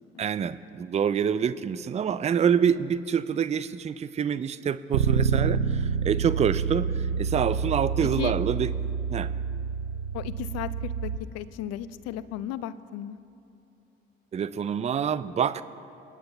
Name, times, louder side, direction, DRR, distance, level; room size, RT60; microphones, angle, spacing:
voice 1, 0.2-8.7 9.1-9.3 14.3-15.6, right 7 dB, 25° right, 15 dB, 0.4 m, -26 dB
Bass guitar, 4.9-11.2, right 6 dB, 85° right, 0.5 m, -28 dB
voice 2, 10.1-13.2, left 11 dB, 55° left, 16 dB, 0.6 m, -35 dB
27.0 x 9.9 x 2.3 m, 2.8 s
figure-of-eight pair, 45°, 30 cm